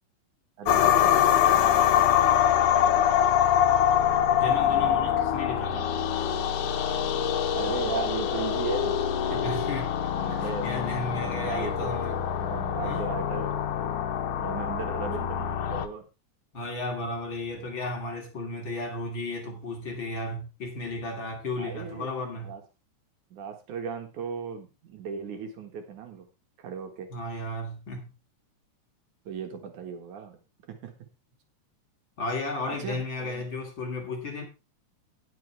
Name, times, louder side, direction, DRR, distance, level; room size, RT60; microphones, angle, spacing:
voice 1, 0.6-1.8 7.5-9.6 10.1-10.6 11.1-11.9 12.4-13.5 14.4-16.0 21.6-22.1 22.4-22.6 23.3-26.3 26.6-27.1 29.3-30.4 30.6-30.9 32.6-33.5, right 6 dB, 75° right, 3.1 m, -36 dB
sound 1, 0.7-15.9, left 10 dB, 90° left, 2.4 m, -24 dB
voice 2, 4.2-5.9 9.4-9.9 10.3-12.2 12.8-13.0 16.5-22.5 27.1-28.1 32.2-34.4, left 2 dB, 40° left, 3.1 m, -34 dB
18.0 x 6.3 x 3.4 m
omnidirectional pair, 3.5 m